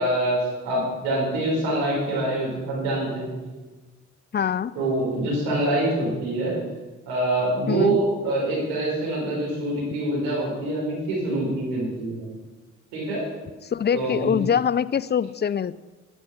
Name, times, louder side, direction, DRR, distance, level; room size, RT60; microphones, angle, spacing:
voice 1, 0.0-3.4 4.7-6.6 7.1-12.3 12.9-13.2 13.9-14.3, right 1 dB, 85° right, -4 dB, 5.0 m, -25 dB
voice 2, 4.3-4.7 7.7-8.0 13.6-15.8, left 8 dB, 30° left, 18 dB, 0.5 m, -24 dB
11.5 x 9.8 x 5.7 m, 1.2 s
hypercardioid pair, 50°, 35 cm